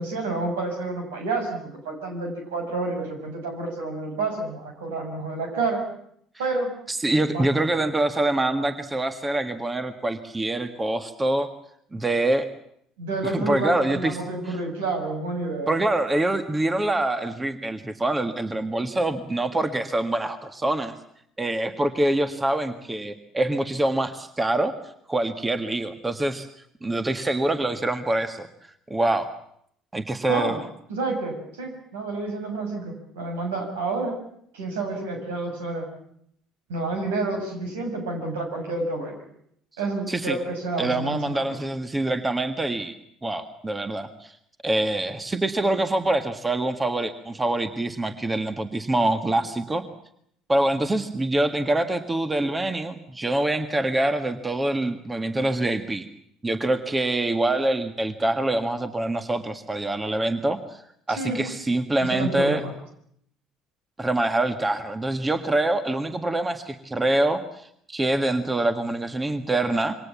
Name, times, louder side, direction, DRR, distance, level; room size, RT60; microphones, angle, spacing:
voice 1, 0.0-5.8 6.4-6.7 7.3-7.6 13.0-15.7 30.3-30.5 30.9-34.2 34.5-35.9 36.7-39.2 39.8-41.5 61.2-61.5 62.0-62.7, right 3 dB, 70° right, 3 dB, 6.4 m, -29 dB
voice 2, 6.9-11.5 11.9-12.5 13.2-14.2 14.5-14.6 15.7-20.9 21.4-24.7 25.1-26.5 26.8-28.5 28.9-29.3 29.9-30.6 40.1-40.4 40.8-42.9 43.2-44.3 44.6-49.8 50.5-56.1 56.4-60.8 61.1-62.6 64.0-70.0, right 1 dB, 15° right, 9 dB, 1.8 m, -25 dB
27.0 x 24.0 x 7.3 m, 0.70 s
figure-of-eight pair, 55°, 0 cm